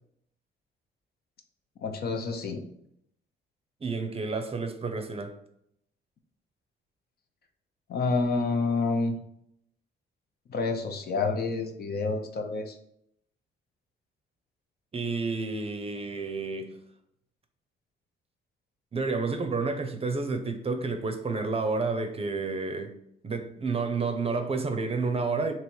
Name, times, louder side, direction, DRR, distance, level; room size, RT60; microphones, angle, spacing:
voice 1, 1.8-2.6 7.9-9.1 10.5-12.8, left 3 dB, 50° left, 0.7 m, -28 dB
voice 2, 3.8-5.3 14.9-16.8 18.9-22.9 23.2-25.5, right 4 dB, 30° right, 0.6 m, -30 dB
3.1 x 2.9 x 4.4 m
cardioid pair, 90°, 20 cm